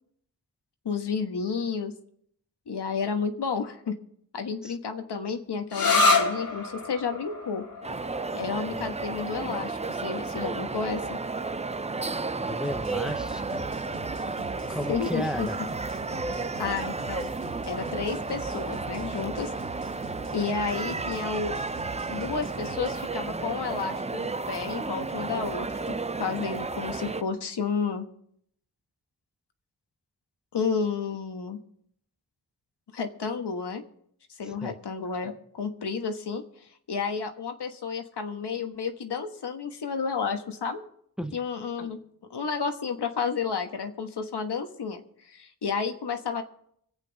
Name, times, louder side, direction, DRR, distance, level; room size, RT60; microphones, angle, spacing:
voice 1, 0.8-1.9 2.7-4.0 4.3-7.6 8.3-11.2 14.7-15.5 16.6-17.3 17.7-19.5 20.3-21.6 22.1-28.1 30.5-31.6 32.9-33.8 34.4-36.4 36.9-40.8 41.3-42.0 42.3-46.4, left 5 dB, 85° left, 6 dB, 1.3 m, -31 dB
sound 1, 5.7-13.1, left 3 dB, 60° left, 1.9 m, -29 dB
sound 2, 7.8-27.2, right 3 dB, 15° right, 0.4 m, -33 dB
voice 2, 12.4-13.7 14.7-15.6 34.6-34.8 41.2-41.4, equal, ahead, 8 dB, 0.8 m, -34 dB
sound 3, 12.6-23.1, right 3 dB, 85° right, 1.3 m, -43 dB
25.0 x 8.4 x 4.0 m, 0.68 s
wide cardioid pair, 95°, 39 cm